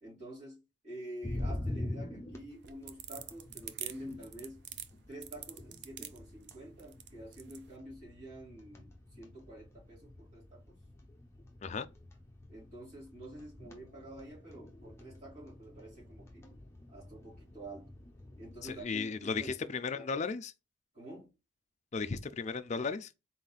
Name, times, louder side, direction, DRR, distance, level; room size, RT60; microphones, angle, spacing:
voice 1, 0.0-4.6 5.1-10.8 12.5-16.5 16.9-18.0 18.4-20.1 20.9-21.3, right 1 dB, 35° right, 2.6 m, -48 dB
sound 1, 1.2-18.8, left 1 dB, 15° left, 0.9 m, -46 dB
sound 2, 2.5-7.6, right 11 dB, 55° right, 0.5 m, -45 dB
voice 2, 18.6-20.5 21.9-23.1, left 4 dB, 35° left, 0.4 m, -35 dB
4.1 x 4.0 x 2.3 m
head